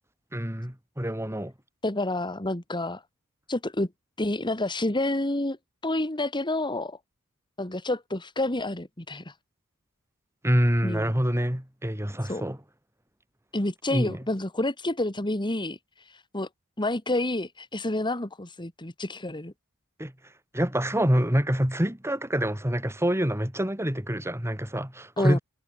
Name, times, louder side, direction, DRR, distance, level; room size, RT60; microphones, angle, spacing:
voice 1, 0.3-1.5 10.4-12.6 13.9-14.2 20.0-20.1 20.5-25.4, equal, 10° right, 3.7 m, -26 dB
voice 2, 1.8-3.0 3.5-3.9 4.2-5.6 5.8-7.0 7.6-9.3 10.8-11.1 12.3-12.4 13.5-15.8 16.1-16.5 16.8-19.5 25.2-25.4, left 1 dB, 20° left, 2.2 m, -29 dB
head